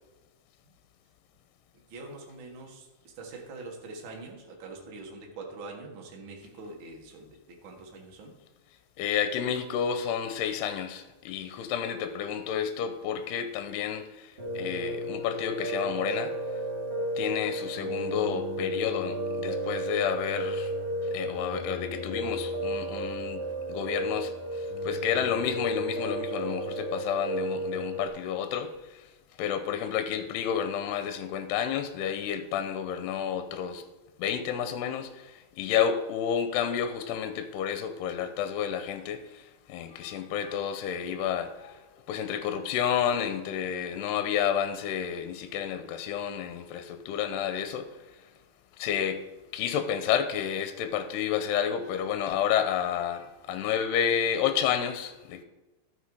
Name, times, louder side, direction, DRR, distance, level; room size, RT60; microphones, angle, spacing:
voice 1, 1.9-8.3, right 3 dB, 50° right, 0 dB, 1.5 m, -44 dB
voice 2, 9.0-16.3 17.2-20.7 21.1-23.4 23.7-29.1 29.4-33.8 34.2-48.0 48.8-49.2 49.5-55.4, left 8 dB, 80° left, 9 dB, 2.7 m, -30 dB
Piano, 14.4-28.1, right 1 dB, 25° right, 1.5 m, -33 dB
12.5 x 5.8 x 4.9 m, 1.1 s
omnidirectional pair, 4.8 m